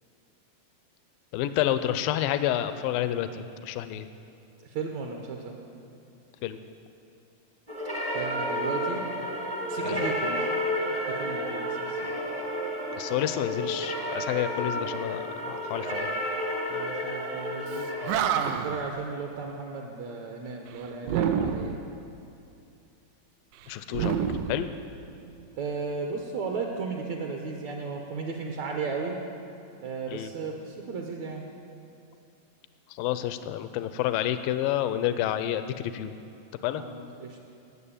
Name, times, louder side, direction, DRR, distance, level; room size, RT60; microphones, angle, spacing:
voice 1, 1.3-4.1 6.4-6.6 9.8-10.0 12.9-16.1 23.7-24.7 30.1-30.3 32.9-36.1 36.6-36.8, left 12 dB, 85° left, 11 dB, 2.3 m, -29 dB
voice 2, 4.6-5.6 8.1-9.1 9.7-10.5 11.1-12.1 16.7-17.9 18.3-21.8 25.6-29.2 29.8-31.4 36.8-37.4, right 4 dB, 65° right, 1 dB, 2.1 m, -35 dB
sound 1, 7.7-18.1, equal, 15° right, 0.7 m, -31 dB
Animal, 17.7-17.8 18.0-18.9 21.0-21.9 23.9-25.2, right 8 dB, 80° right, 2.3 m, -28 dB
18.0 x 7.3 x 8.7 m, 2.6 s
omnidirectional pair, 4.0 m